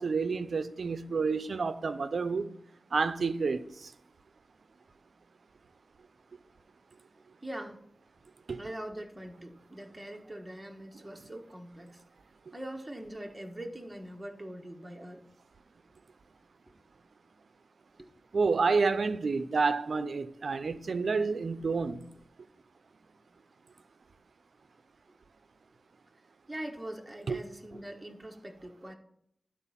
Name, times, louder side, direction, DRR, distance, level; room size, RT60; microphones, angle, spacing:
voice 1, 0.0-2.5 2.9-3.9 8.5-8.6 18.3-22.0 27.3-27.4, right 4 dB, 75° right, 0.6 m, -29 dB
voice 2, 7.4-7.8 8.6-12.0 12.5-15.2 26.5-28.9, right 1 dB, 15° right, 1.5 m, -42 dB
12.0 x 4.4 x 5.7 m
wide cardioid pair, 65°, 0 cm